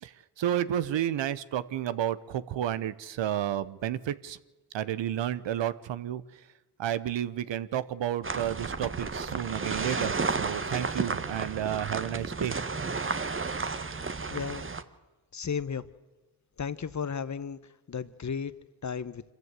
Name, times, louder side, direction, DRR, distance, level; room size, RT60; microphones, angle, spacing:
voice 1, 0.0-4.4 4.7-6.4 6.8-12.6, right 11 dB, 70° right, 16 dB, 1.0 m, -31 dB
sound 1, 8.2-14.8, right 4 dB, 25° right, 1.3 m, -32 dB
voice 2, 14.3-14.7 15.3-15.8 16.6-17.6 17.9-18.5 18.8-19.2, left 6 dB, 40° left, 16 dB, 1.1 m, -34 dB
25.0 x 14.5 x 8.2 m, 1.1 s
supercardioid pair, 50°, 45 cm